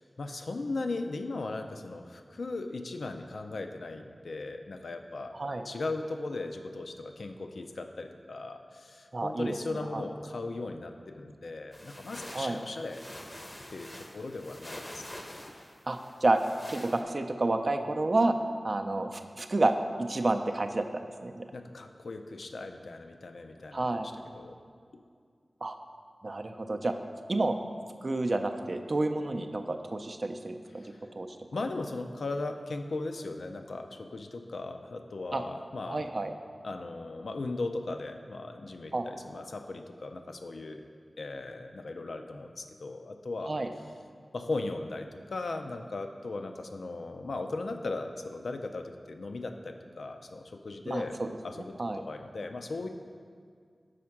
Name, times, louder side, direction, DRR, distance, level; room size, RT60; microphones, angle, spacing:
voice 1, 0.0-5.4 5.6-13.0 13.7-15.2 21.5-24.6 30.8-31.1 31.5-36.0 36.6-43.5 44.3-51.2 51.4-52.9, left 3 dB, 80° left, 6 dB, 0.4 m, -38 dB
voice 2, 5.3-5.6 9.1-9.6 9.9-10.0 12.3-12.6 15.9-16.4 16.7-18.3 18.6-21.5 23.7-24.1 25.6-25.8 26.2-26.9 27.3-27.5 28.0-30.8 31.2-31.3 35.3-35.4 35.9-36.3 38.9-39.1 43.5-43.7 50.9-51.3 51.8-52.0, right 2 dB, 50° right, 6 dB, 0.4 m, -29 dB
sound 1, 11.7-17.0, left 1 dB, 25° left, 0.6 m, -46 dB
4.9 x 4.3 x 5.7 m, 2.1 s
wide cardioid pair, 65°, 0 cm